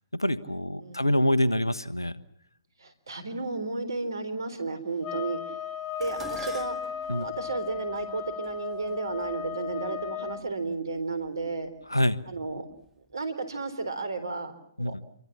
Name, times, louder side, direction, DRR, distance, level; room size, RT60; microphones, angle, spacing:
voice 1, 0.2-2.1 7.1-7.3 11.9-12.2 14.8-14.9, left 1 dB, 90° left, 15 dB, 1.3 m, -25 dB
voice 2, 2.8-5.4 6.0-6.8 7.1-11.7 12.3-12.7 13.1-14.9, right 3 dB, 70° right, 12 dB, 4.0 m, -33 dB
sound 1, 5.0-10.4, left 9 dB, 30° left, 3.8 m, -36 dB
Dishes pots and pans, 6.0-10.4 11.3-11.7 12.0-12.9 13.1-13.2, right 5 dB, 10° right, 2.3 m, -48 dB
28.0 x 23.5 x 7.3 m, 0.67 s
figure-of-eight pair, 125°, 2 cm